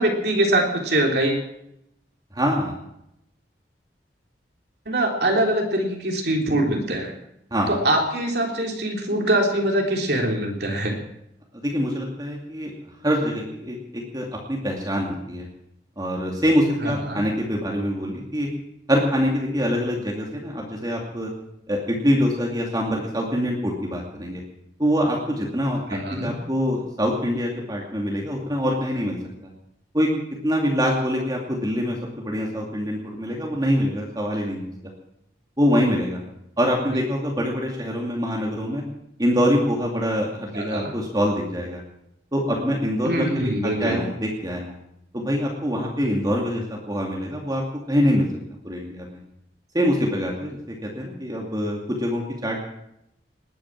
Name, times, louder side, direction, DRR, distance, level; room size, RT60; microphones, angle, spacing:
voice 1, 0.0-1.4 4.8-7.1 7.7-11.0 16.8-17.2 25.9-26.3 36.9-37.0 40.5-40.9 43.0-44.0, right 1 dB, 65° right, 1 dB, 3.3 m, -23 dB
voice 2, 2.3-2.8 7.5-7.7 11.6-12.7 13.0-13.8 14.1-15.5 16.0-18.5 18.9-21.3 21.7-24.4 24.8-29.2 29.9-30.1 30.4-34.7 35.6-36.2 36.6-38.8 39.2-41.8 42.3-44.7 45.1-47.6 47.9-48.3 48.6-49.2 49.7-52.7, equal, 20° right, -1 dB, 2.5 m, -24 dB
20.0 x 9.6 x 7.5 m, 0.81 s
head